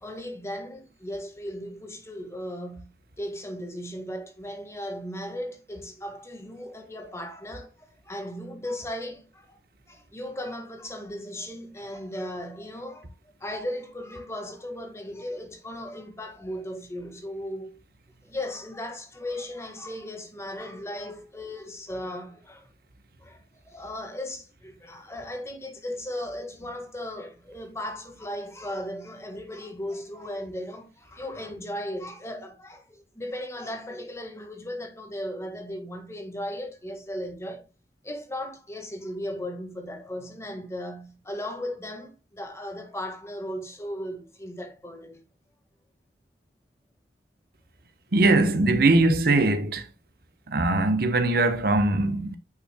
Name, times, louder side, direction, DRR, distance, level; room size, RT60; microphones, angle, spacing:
voice 1, 0.0-2.9 3.2-9.6 9.9-13.1 13.4-17.8 18.2-22.7 23.2-37.6 38.0-45.2, left 1 dB, 15° left, 1.5 m, -36 dB
voice 2, 48.1-49.9 50.5-52.4, right 2 dB, 55° right, 1.0 m, -21 dB
9.5 x 5.6 x 2.2 m
head